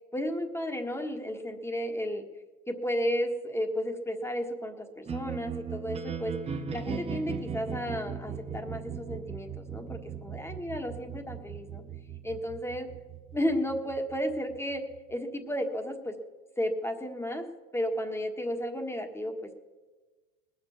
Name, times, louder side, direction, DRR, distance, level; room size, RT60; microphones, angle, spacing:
voice 1, 0.1-2.2 2.7-11.8 12.2-12.9 13.3-14.8 15.1-16.1 16.6-17.4 17.7-19.5, equal, 5° left, 5 dB, 1.5 m, -33 dB
sound 1, 5.1-15.1, right 6 dB, 15° right, 0.6 m, -38 dB
20.0 x 7.3 x 7.1 m, 1.3 s
hypercardioid pair, 105°, 47 cm